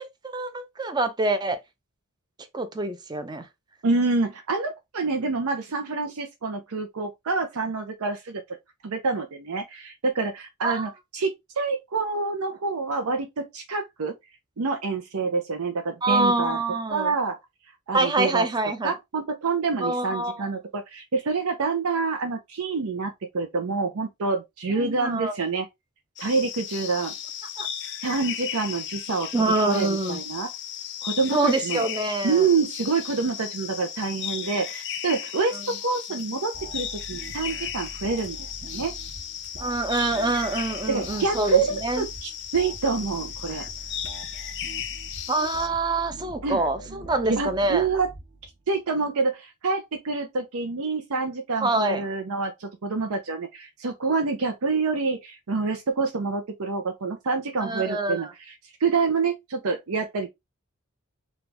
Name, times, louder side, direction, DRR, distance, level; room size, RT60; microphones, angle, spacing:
voice 1, 0.0-1.6 2.5-3.5 10.6-10.9 16.0-17.1 17.9-18.9 19.8-20.5 24.8-25.4 27.6-27.7 29.3-30.2 31.3-32.4 39.6-42.0 45.3-47.9 51.6-52.1 57.6-58.3, right 2 dB, 20° right, 0.5 m, -26 dB
voice 2, 3.8-8.4 8.8-14.1 14.6-16.6 16.9-17.4 17.9-18.4 18.8-25.7 26.2-27.1 28.0-30.5 31.0-31.8 32.2-38.4 38.7-38.9 40.9-41.7 42.0-43.6 46.4-46.6 47.3-48.1 48.7-58.5 58.8-60.3, right 4 dB, 75° right, 0.6 m, -27 dB
sound 1, 26.2-45.7, left 9 dB, 50° left, 0.5 m, -35 dB
sound 2, 36.5-48.7, right 3 dB, 40° right, 0.8 m, -43 dB
4.3 x 2.3 x 3.3 m
head